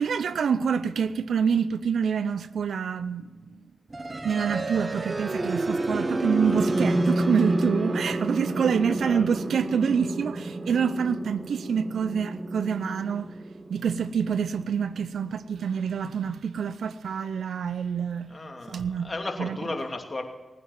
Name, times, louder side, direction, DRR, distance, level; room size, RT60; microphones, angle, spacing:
voice 1, 0.0-3.2 4.2-13.3 13.7-18.3 18.7-19.1 19.4-19.6, right 6 dB, 85° right, 0.6 m, -26 dB
sound 1, 3.9-15.8, right 2 dB, 40° right, 1.2 m, -30 dB
voice 2, 8.5-9.4 18.3-20.2, left 2 dB, 40° left, 2.7 m, -35 dB
19.5 x 9.6 x 7.3 m
cardioid pair, 40°, 0 cm